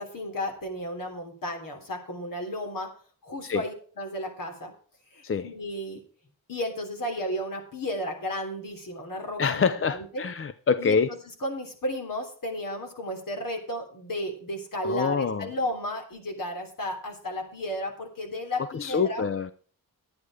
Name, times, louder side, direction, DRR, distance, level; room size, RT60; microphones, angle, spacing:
voice 1, 0.0-2.9 3.2-4.7 5.1-6.0 6.5-10.2 10.8-11.0 11.4-19.2, left 1 dB, 60° left, 3 dB, 3.4 m, -33 dB
voice 2, 9.4-11.1 14.8-15.5 18.8-19.5, left 5 dB, 35° left, 13 dB, 0.5 m, -25 dB
12.5 x 9.5 x 4.8 m, 0.42 s
wide cardioid pair, 175°, 37 cm